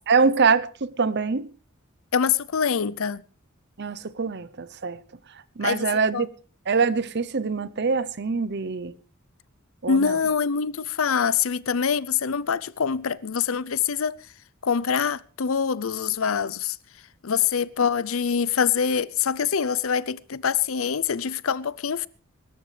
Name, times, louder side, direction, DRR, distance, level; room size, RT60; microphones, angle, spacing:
voice 1, 0.1-1.5 3.8-5.0 5.6-6.3 6.7-8.9 9.8-10.2, right 5 dB, 55° right, 0.8 m, -24 dB
voice 2, 2.1-3.2 5.6-5.8 6.1-6.2 9.9-14.2 14.6-16.8 17.2-22.1, left 6 dB, 75° left, 0.6 m, -24 dB
23.0 x 13.0 x 3.3 m
head